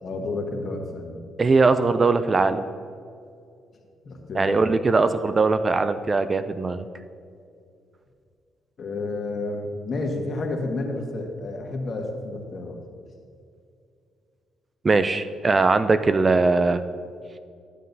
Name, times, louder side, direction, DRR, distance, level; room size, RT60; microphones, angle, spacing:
voice 1, 0.0-1.2 4.0-4.6 8.8-12.8, left 2 dB, 50° left, 2 dB, 1.4 m, -30 dB
voice 2, 1.4-2.7 4.3-6.8 14.8-16.8, right 3 dB, 30° right, 11 dB, 0.4 m, -20 dB
12.5 x 7.5 x 2.7 m, 2.4 s
cardioid pair, 90°, 0 cm